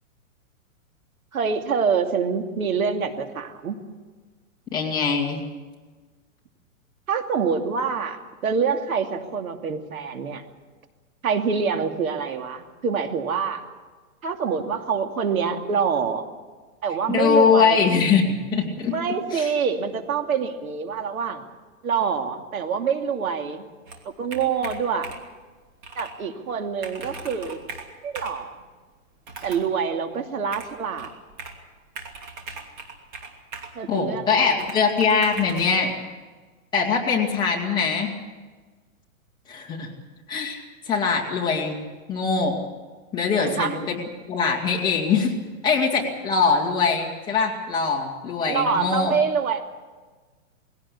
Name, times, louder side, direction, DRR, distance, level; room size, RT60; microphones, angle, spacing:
voice 1, 1.3-3.8 7.1-10.4 11.2-13.6 14.2-16.3 16.8-17.8 18.9-21.4 21.8-23.7 24.2-25.1 26.0-27.6 28.0-28.6 29.4-31.1 33.7-34.5 43.4-43.8 48.5-49.6, right 6 dB, 85° right, 5 dB, 2.8 m, -26 dB
voice 2, 4.7-5.4 17.1-18.9 19.3-19.5 33.9-35.9 36.7-38.1 39.5-39.9 40.3-41.8 42.1-42.6 43.1-44.0 44.3-45.3 45.6-49.1, left 5 dB, 10° left, -1 dB, 2.1 m, -22 dB
Computer keyboard, 23.9-25.4 25.8-26.2 26.5-26.6 26.8-28.4 29.2-29.7 30.5-31.6 32.0-33.8 34.6-35.8, right 4 dB, 35° right, 2.8 m, -39 dB
21.0 x 17.0 x 8.5 m, 1.4 s
hypercardioid pair, 170°, 41 cm